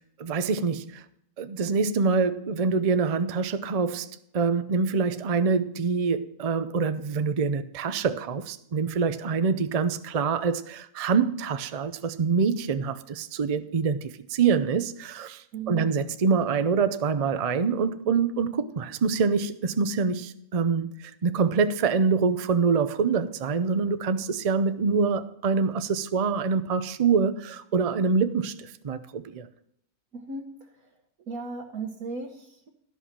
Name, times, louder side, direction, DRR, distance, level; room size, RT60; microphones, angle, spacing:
voice 1, 0.2-1.0 1.4-29.5, right 5 dB, 50° right, 0.4 m, -25 dB
voice 2, 15.5-15.9 30.1-30.9 31.3-32.7, right 4 dB, 70° right, 1.5 m, -36 dB
12.5 x 5.5 x 7.2 m
omnidirectional pair, 1.6 m